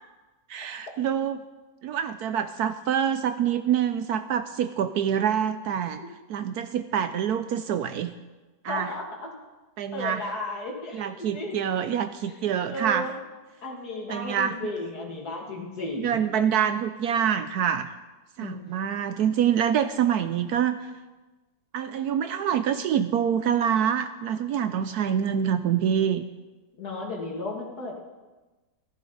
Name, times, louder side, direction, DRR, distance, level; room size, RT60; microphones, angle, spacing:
voice 1, 0.5-1.4 1.8-6.0 6.3-8.2 8.6-8.9 9.8-10.3 10.9-13.1 14.1-14.6 16.0-17.9 18.4-20.9 21.7-26.2, right 8 dB, 70° right, 11 dB, 1.0 m, -26 dB
voice 2, 8.7-9.4 9.9-11.6 12.4-13.1 13.6-16.2 18.4-18.6 26.8-28.0, left 2 dB, 60° left, -1 dB, 2.8 m, -34 dB
15.0 x 14.0 x 4.0 m, 1.2 s
omnidirectional pair, 1.9 m